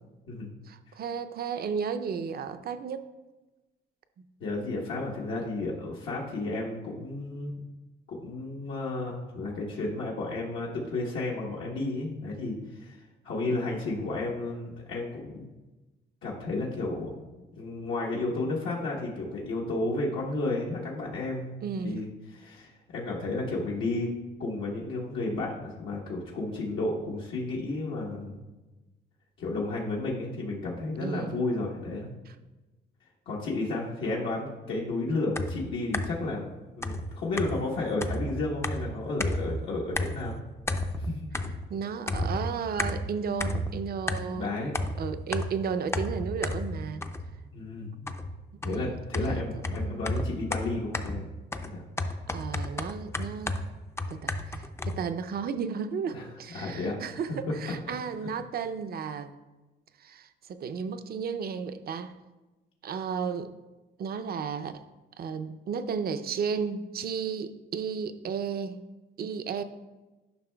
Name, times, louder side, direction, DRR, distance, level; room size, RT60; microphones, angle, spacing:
voice 1, 0.7-3.1 4.2-4.3 21.6-22.0 31.0-31.4 32.3-32.4 41.7-44.5 45.0-47.0 48.5-50.1 52.3-53.6 54.1-59.3 60.0-62.1 62.8-63.5 64.0-64.9 65.2-68.8 69.2-69.6, right 6 dB, 50° right, 10 dB, 0.5 m, -34 dB
voice 2, 4.4-7.5 8.1-15.4 16.2-17.3 17.6-21.5 21.8-24.1 24.4-28.4 29.4-32.1 33.3-36.5 36.8-40.4 41.0-41.3 44.3-44.7 47.5-48.1 48.6-51.3 51.6-51.8 56.1-56.2 56.5-57.0 57.5-57.7, left 2 dB, 80° left, -4 dB, 1.1 m, -32 dB
sound 1, 35.4-36.3 36.8-39.6 39.9-40.4 40.6-41.8 42.1-44.4 44.7-47.5 48.1-55.0, left 1 dB, 15° left, 0.4 m, -32 dB
11.0 x 5.4 x 2.3 m, 1.1 s
cardioid pair, 90°, 20 cm